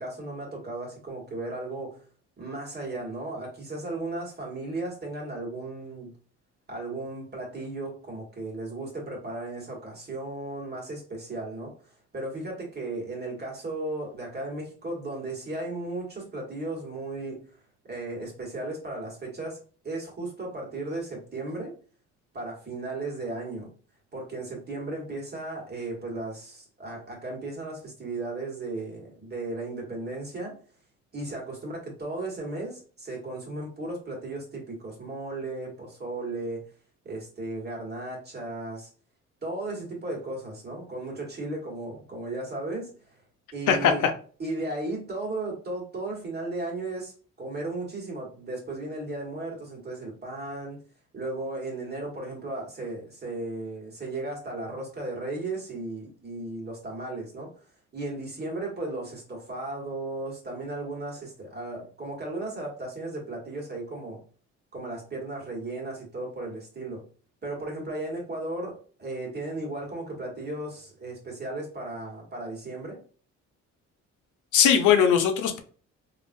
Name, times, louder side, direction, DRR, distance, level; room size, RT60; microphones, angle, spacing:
voice 1, 0.0-2.0 2.4-6.2 6.7-17.5 17.8-19.6 19.8-21.7 22.3-23.7 24.1-30.6 31.1-36.7 37.0-38.9 39.4-43.2 43.5-44.0 44.4-50.8 51.1-57.5 57.9-64.2 64.7-67.1 67.4-73.0, right 2 dB, 35° right, -1 dB, 1.4 m, -35 dB
voice 2, 43.7-44.1 74.5-75.6, left 8 dB, 80° left, 6 dB, 0.6 m, -20 dB
3.5 x 2.4 x 2.5 m, 0.41 s
cardioid pair, 90°, 30 cm